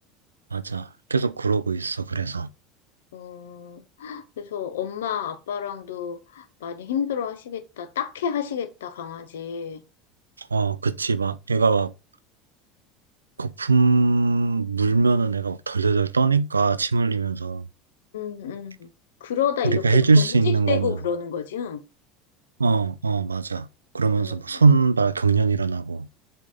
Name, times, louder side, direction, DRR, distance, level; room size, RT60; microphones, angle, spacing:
voice 1, 0.5-2.5 10.4-11.9 13.4-17.6 19.6-21.0 22.6-23.7 23.9-26.1, right 4 dB, 85° right, 0.3 m, -21 dB
voice 2, 3.1-9.8 18.1-18.9 19.2-21.8 24.2-24.6, left 8 dB, 70° left, 0.8 m, -30 dB
7.4 x 3.8 x 3.8 m
figure-of-eight pair, 70°, 0 cm